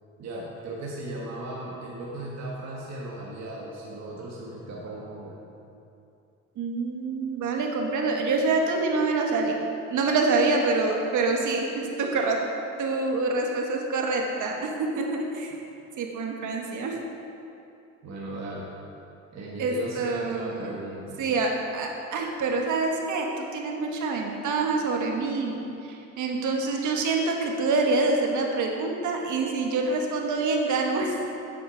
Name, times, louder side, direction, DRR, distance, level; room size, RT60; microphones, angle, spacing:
voice 1, 0.2-5.4 18.0-18.7 19.3-21.2, right 1 dB, 60° right, -4 dB, 1.6 m, -36 dB
voice 2, 6.6-9.5 9.9-12.4 12.8-15.5 16.0-17.0 19.6-20.7 21.2-25.6 25.9-31.1, right 3 dB, 75° right, 1 dB, 1.4 m, -26 dB
8.1 x 8.0 x 5.0 m, 2.8 s
cardioid pair, 90°, 30 cm